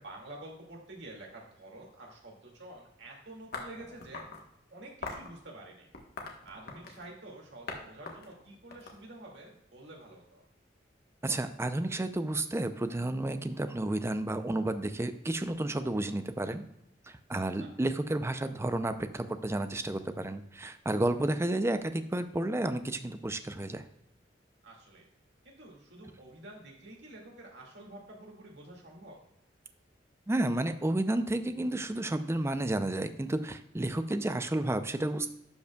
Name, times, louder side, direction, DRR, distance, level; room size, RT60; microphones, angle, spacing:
voice 1, 0.0-4.2 4.7-5.9 6.4-10.4 17.3-17.7 24.6-25.1 25.4-29.2, right 1 dB, 70° right, -1 dB, 2.2 m, -49 dB
sound 1, 3.5-4.4 5.0-5.3 5.9-7.1 7.7-7.8 8.1-9.5, left 3 dB, 60° left, 1.3 m, -41 dB
voice 2, 11.2-16.6 17.3-23.8 30.3-35.3, right 1 dB, 15° right, 10 dB, 0.5 m, -31 dB
11.5 x 5.3 x 2.3 m, 0.79 s
head